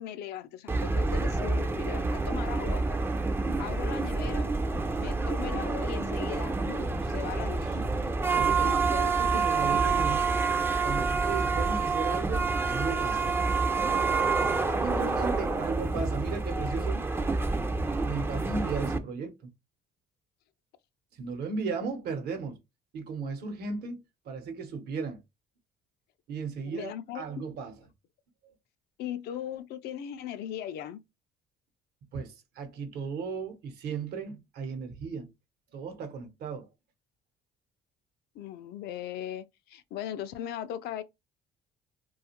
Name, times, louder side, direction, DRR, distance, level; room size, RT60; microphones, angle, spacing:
voice 1, 0.0-2.8 3.6-4.5 5.0-7.8 8.6-9.0 14.9-15.6 26.6-27.2 29.0-31.0 38.3-41.0, left 10 dB, 70° left, 0.4 m, -39 dB
sound 1, 0.7-19.0, right 4 dB, 15° right, 0.3 m, -28 dB
voice 2, 7.4-7.9 8.2-10.4 10.8-13.3 14.5-17.1 18.0-19.3 21.2-22.6 22.9-25.2 26.3-27.7 32.1-35.3 35.7-36.7, right 5 dB, 70° right, 0.8 m, -36 dB
2.4 x 2.3 x 2.8 m
cardioid pair, 110°, 17 cm